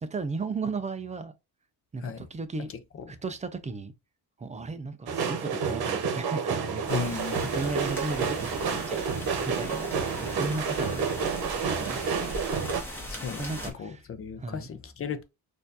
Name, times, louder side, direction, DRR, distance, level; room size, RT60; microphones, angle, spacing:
voice 1, 0.0-1.3 1.9-2.7 3.1-3.9 4.4-9.1 9.5-11.1 11.7-12.4 13.4-14.0 14.4-14.7, right 3 dB, 20° right, 0.3 m, -35 dB
sound 1, 5.1-12.8, right 5 dB, 65° right, 0.9 m, -29 dB
voice 2, 6.9-7.5 13.1-13.5 13.8-15.2, left 6 dB, 35° left, 0.5 m, -35 dB
sound 2, 6.9-13.7, left 1 dB, 5° left, 1.2 m, -40 dB
4.2 x 2.6 x 2.6 m
cardioid pair, 145°, 40 cm